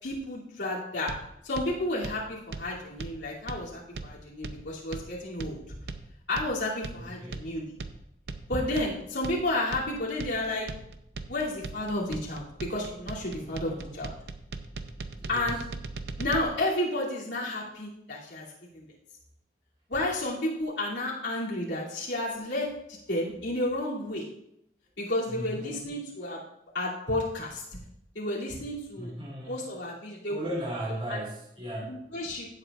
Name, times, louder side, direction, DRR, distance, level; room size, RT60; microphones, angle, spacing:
voice 1, 0.0-1.1 1.4-5.6 6.3-7.7 8.5-10.7 11.3-14.1 15.3-15.6 16.2-18.4 18.7-18.9 19.9-22.7 23.1-24.2 25.0-26.4 26.7-27.6 28.1-29.1 29.5-30.6 31.1-31.2 31.9-32.5, left 1 dB, 90° left, -6 dB, 2.8 m, -31 dB
sound 1, 1.1-16.4, right 3 dB, 65° right, 0.6 m, -40 dB
voice 2, 7.0-7.3 13.4-14.0 15.1-15.6 25.3-25.9 29.0-29.7 30.3-32.0, right 1 dB, 30° right, -7 dB, 3.5 m, -37 dB
16.0 x 7.8 x 2.5 m, 0.78 s
head